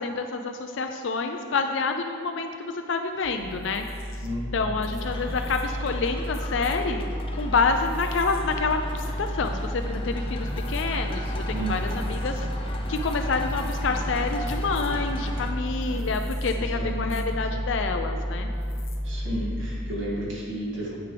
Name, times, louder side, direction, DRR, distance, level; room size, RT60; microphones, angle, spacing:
voice 1, 0.0-4.2 4.5-7.1 7.3-18.5, left 4 dB, 65° left, 5 dB, 0.4 m, -28 dB
sound 1, 3.2-19.8, equal, 85° left, 0.9 m, -31 dB
voice 2, 4.2-5.4 11.5-12.2 16.5-17.6 19.0-21.0, right 1 dB, 70° right, -6 dB, 2.2 m, -34 dB
sound 2, 5.0-15.5, left 1 dB, 25° left, 0.7 m, -39 dB
sound 3, 8.4-16.4, left 1 dB, 10° right, 1.8 m, -45 dB
9.0 x 8.0 x 3.4 m, 2.3 s
head